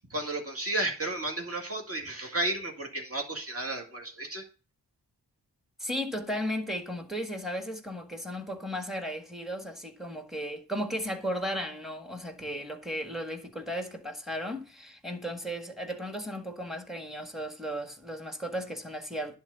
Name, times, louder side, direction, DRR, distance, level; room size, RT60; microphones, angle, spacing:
voice 1, 0.1-4.4, right 2 dB, 30° right, 2.2 m, -33 dB
voice 2, 5.8-19.4, equal, ahead, 1.7 m, -35 dB
10.5 x 3.9 x 6.8 m
wide cardioid pair, 55°, 43 cm